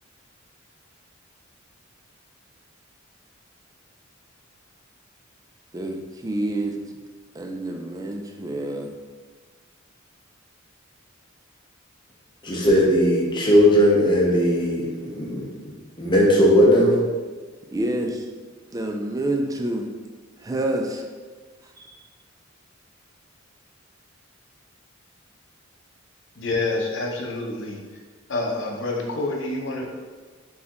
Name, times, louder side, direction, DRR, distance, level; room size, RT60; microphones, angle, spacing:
voice 1, 5.7-6.8 7.3-8.9 17.7-18.3 18.7-19.9 20.4-21.0 21.8-21.9, right 1 dB, 15° right, 3 dB, 0.4 m, -28 dB
voice 2, 12.4-15.4 16.0-16.9, equal, 25° left, -3 dB, 0.8 m, -18 dB
voice 3, 26.4-27.8 28.3-29.9, left 2 dB, 65° left, 0 dB, 0.7 m, -27 dB
4.3 x 3.5 x 2.9 m, 1.4 s
head